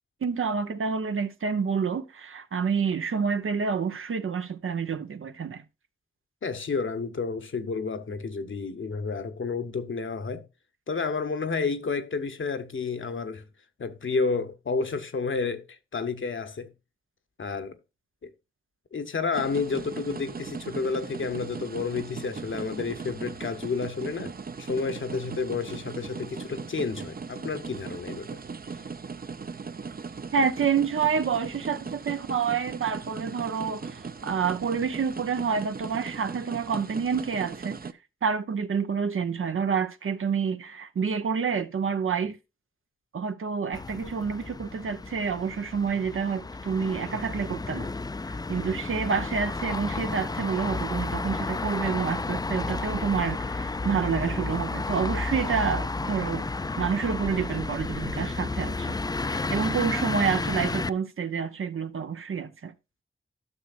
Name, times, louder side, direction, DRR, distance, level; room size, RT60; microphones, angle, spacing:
voice 1, 0.2-5.6 30.3-37.8 38.2-42.4 43.1-47.9 48.5-56.5 56.8-58.9 59.2-62.7, right 6 dB, 85° right, 0.7 m, -28 dB
voice 2, 6.4-10.4 10.9-13.5 13.8-16.7 17.4-17.8 18.2-18.3 18.9-28.3, left 4 dB, 70° left, 0.9 m, -30 dB
sound 1, 19.3-37.9, right 5 dB, 45° right, 0.5 m, -38 dB
sound 2, 43.7-60.9, left 3 dB, 20° left, 0.3 m, -32 dB
12.5 x 6.3 x 2.5 m
wide cardioid pair, 55°, 21 cm